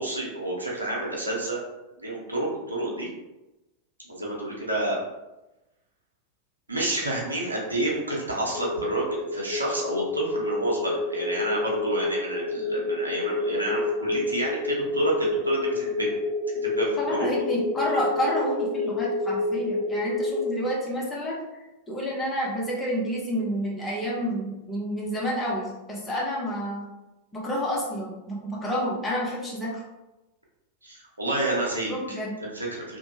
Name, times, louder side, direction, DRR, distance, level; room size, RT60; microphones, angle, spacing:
voice 1, 0.0-1.6 2.0-3.1 4.1-5.0 6.7-16.1 16.6-17.3 30.8-33.0, right 1 dB, 80° right, -3 dB, 0.7 m, -29 dB
sound 1, 8.5-20.5, left 2 dB, 30° left, 0.3 m, -28 dB
voice 2, 17.0-21.4 21.9-26.8 27.3-29.8 31.9-32.3, equal, 15° left, -4 dB, 0.8 m, -29 dB
2.9 x 2.2 x 2.8 m, 1.0 s
figure-of-eight pair, 90°, 0 cm